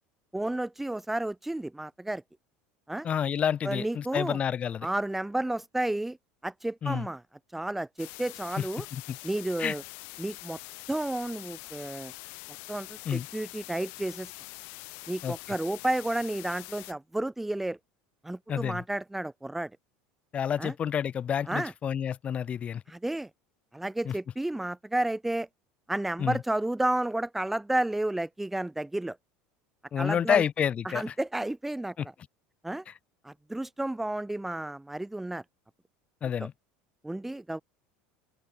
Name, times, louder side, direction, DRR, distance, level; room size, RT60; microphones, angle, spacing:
voice 1, 0.3-2.2 2.9-3.1 3.6-4.4 4.8-6.2 6.4-7.2 7.5-8.9 9.2-9.8 10.2-10.6 10.9-12.1 12.7-14.3 15.1-17.8 18.2-19.7 20.6-20.7 21.5-21.7 22.9-23.3 23.7-25.5 25.9-29.2 30.0-30.4 30.9-32.1 32.6-32.8 33.2-35.4 36.4-36.5 37.0-37.6, right 1 dB, 5° right, 1.8 m, -31 dB
voice 2, 3.0-4.9 6.8-7.1 8.6-9.2 9.6-9.7 13.0-13.3 15.2-15.3 18.5-18.8 20.3-22.8 24.0-24.1 26.2-26.4 29.9-31.1 32.0-32.1 32.9-33.0 36.2-36.5, left 8 dB, 35° left, 3.3 m, -29 dB
sound 1, 8.0-16.9, left 32 dB, 70° left, 2.8 m, -44 dB
open air
supercardioid pair, 120°, 4 cm